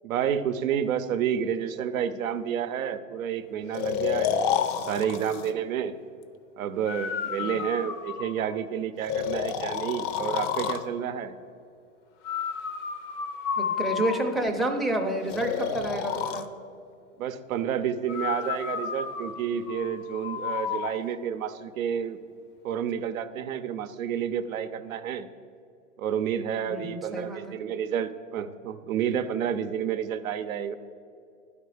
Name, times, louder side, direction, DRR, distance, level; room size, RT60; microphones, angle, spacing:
voice 1, 0.0-4.6 4.9-5.9 6.6-11.4 17.2-22.2 22.6-25.3 26.0-30.8, right 8 dB, 80° right, 10 dB, 0.7 m, -30 dB
Breathing, 3.7-5.5 6.9-8.5 9.1-10.9 12.2-14.5 15.3-16.5 18.1-20.9, left 7 dB, 40° left, 0.6 m, -31 dB
voice 2, 13.6-16.4 26.7-27.6, right 1 dB, ahead, 0 dB, 0.5 m, -29 dB
11.0 x 5.1 x 4.9 m, 2.5 s
hypercardioid pair, 130°, 40 cm